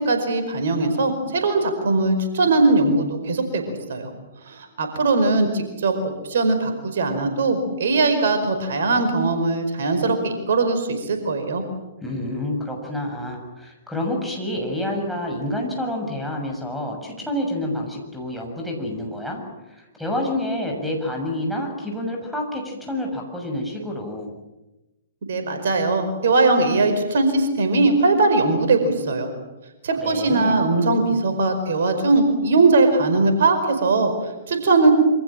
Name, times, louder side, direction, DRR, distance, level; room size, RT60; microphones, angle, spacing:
voice 1, 0.0-4.1 4.5-11.6 25.3-29.3 29.8-34.9, right 3 dB, 55° right, 7 dB, 5.0 m, -20 dB
voice 2, 12.0-19.4 19.7-24.4 30.0-30.6, left 1 dB, ahead, 1 dB, 6.9 m, -28 dB
27.5 x 25.5 x 7.6 m, 1.0 s
figure-of-eight pair, 115°, 0 cm